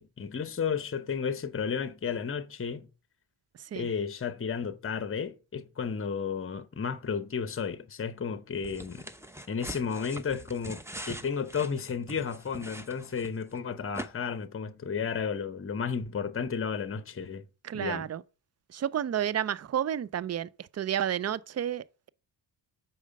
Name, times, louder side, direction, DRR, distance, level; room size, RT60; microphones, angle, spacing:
voice 1, 0.0-2.9 3.7-9.1 9.5-17.5 17.7-18.0, left 6 dB, 25° left, 0.8 m, -33 dB
sound 1, 8.6-13.6 13.9-14.1, right 1 dB, 5° right, 0.8 m, -43 dB
voice 2, 17.6-18.2 18.7-22.1, right 10 dB, 35° right, 0.5 m, -31 dB
6.4 x 4.9 x 5.3 m
supercardioid pair, 50°, 50 cm